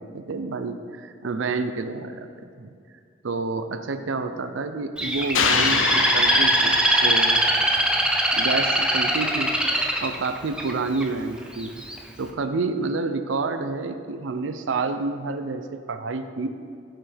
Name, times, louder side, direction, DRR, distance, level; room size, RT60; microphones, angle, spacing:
voice 1, 0.0-2.7 3.2-7.7 8.3-11.8 12.2-16.5, right 3 dB, 85° right, 8 dB, 0.5 m, -29 dB
Bird, 5.0-11.0 11.6-12.0, right 1 dB, 5° right, 0.6 m, -21 dB
sound 1, 5.3-7.5, left 7 dB, 85° left, 0.6 m, -26 dB
15.5 x 5.8 x 3.4 m, 2.3 s
head